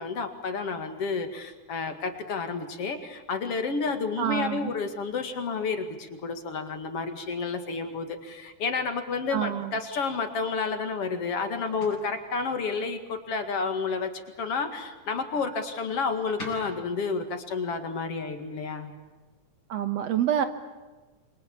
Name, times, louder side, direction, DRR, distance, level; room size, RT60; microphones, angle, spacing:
voice 1, 0.0-14.1 14.4-18.9, left 4 dB, 50° left, 7 dB, 2.8 m, -30 dB
voice 2, 4.2-4.7 9.3-9.8 19.7-20.5, right 10 dB, 65° right, 10 dB, 2.0 m, -27 dB
sound 1, 10.6-19.8, left 1 dB, 25° left, 7.6 m, -50 dB
27.5 x 24.0 x 8.7 m, 1.2 s
omnidirectional pair, 3.5 m